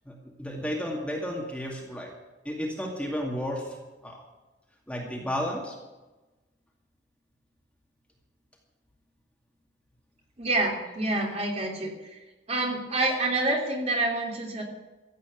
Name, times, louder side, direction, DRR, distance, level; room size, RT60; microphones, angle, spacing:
voice 1, 0.1-2.1 2.4-3.8 4.0-4.2 4.9-5.8, equal, 5° left, -1 dB, 2.3 m, -32 dB
voice 2, 10.4-12.2 12.5-14.6, right 2 dB, 35° right, 0 dB, 3.0 m, -27 dB
15.0 x 8.3 x 8.1 m, 1.1 s
head